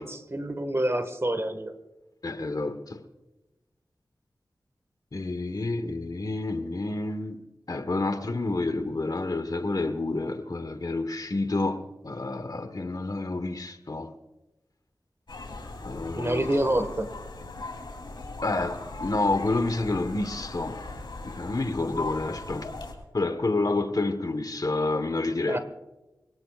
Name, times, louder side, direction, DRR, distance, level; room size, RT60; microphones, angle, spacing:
voice 1, 0.0-1.7 16.2-17.1 25.5-25.6, right 1 dB, 35° right, 1.7 m, -27 dB
voice 2, 2.2-3.0 5.1-14.1 15.8-16.5 18.4-20.8 21.2-22.7 23.1-25.6, left 2 dB, 55° left, 1.3 m, -29 dB
sound 1, 15.3-22.9, left 3 dB, 75° left, 3.4 m, -39 dB
26.5 x 17.5 x 2.5 m
cardioid pair, 40°, 8 cm